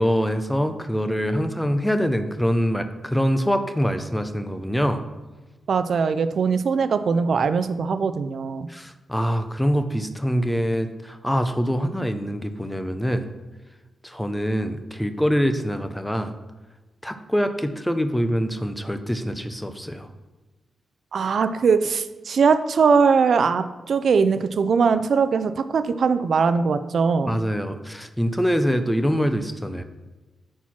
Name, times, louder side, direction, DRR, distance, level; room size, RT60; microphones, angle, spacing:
voice 1, 0.0-5.0 8.7-13.3 14.0-16.3 17.0-20.1 27.3-29.8, equal, 5° left, 8 dB, 0.5 m, -24 dB
voice 2, 5.7-8.7 21.1-27.4, right 5 dB, 55° right, 11 dB, 0.4 m, -21 dB
9.1 x 4.3 x 5.8 m, 1.2 s
wide cardioid pair, 150°, 0 cm